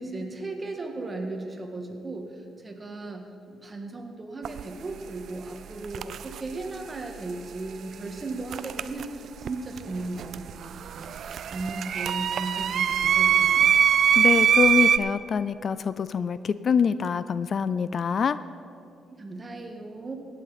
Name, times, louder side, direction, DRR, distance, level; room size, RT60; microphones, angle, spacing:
voice 1, 0.0-13.8 19.2-20.1, right 2 dB, 30° right, 3 dB, 1.6 m, -36 dB
sound 1, 4.4-4.6 5.8-6.4 8.5-9.5 9.8-15.0, right 8 dB, 65° right, 0.4 m, -23 dB
voice 2, 14.2-18.4, left 6 dB, 50° left, 15 dB, 0.3 m, -25 dB
17.0 x 9.0 x 4.2 m, 2.5 s
cardioid pair, 90°, 0 cm